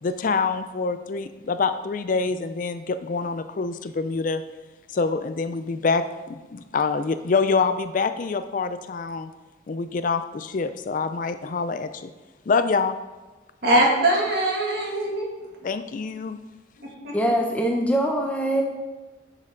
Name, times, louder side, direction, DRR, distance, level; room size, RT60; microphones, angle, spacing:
voice 1, 0.0-4.4 4.9-9.3 9.7-12.1 12.5-13.0 13.7-13.8 15.6-16.4, left 4 dB, 45° left, 11 dB, 0.4 m, -26 dB
voice 2, 13.6-15.4 17.0-17.3, right 1 dB, 55° right, -2 dB, 2.2 m, -22 dB
voice 3, 17.1-18.6, right 1 dB, 5° left, 1 dB, 0.7 m, -23 dB
10.0 x 6.4 x 3.8 m, 1.2 s
head